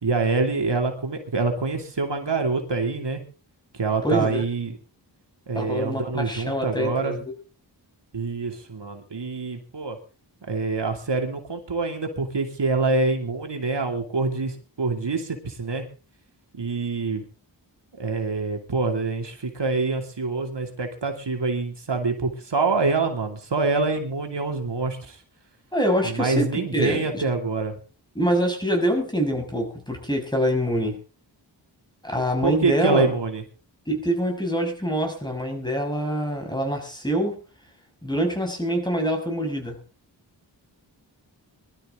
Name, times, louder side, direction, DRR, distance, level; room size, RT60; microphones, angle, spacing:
voice 1, 0.0-3.2 3.7-4.7 5.5-7.2 8.1-10.0 10.5-15.8 16.5-17.2 18.0-25.2 26.0-27.7 32.4-33.4, right 3 dB, 70° right, 4 dB, 2.9 m, -26 dB
voice 2, 4.0-4.4 5.5-7.3 25.7-27.3 28.1-31.0 32.0-33.1 33.9-37.4 38.0-39.8, equal, 10° left, 3 dB, 6.1 m, -25 dB
22.0 x 12.5 x 3.8 m, 0.35 s
wide cardioid pair, 85°, 43 cm